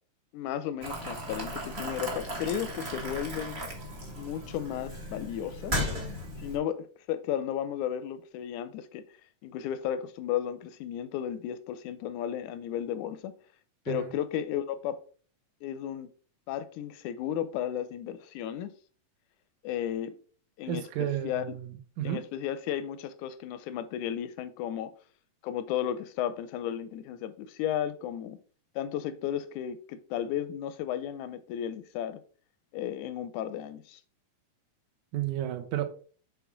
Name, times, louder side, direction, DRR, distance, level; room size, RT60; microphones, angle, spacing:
voice 1, 0.3-3.6 4.2-5.8 6.4-9.0 9.4-13.3 13.9-15.0 15.6-16.1 16.5-18.7 19.6-20.1 20.6-20.9 21.2-21.4 22.0-24.9 25.4-28.4 28.8-32.2 32.7-34.0, left 10 dB, 80° left, 1.8 m, -34 dB
Boiling, 0.8-6.6, equal, 40° right, 0.9 m, -36 dB
voice 2, 20.7-22.2 35.1-35.9, right 11 dB, 70° right, 2.1 m, -32 dB
7.0 x 4.1 x 4.5 m
omnidirectional pair, 3.9 m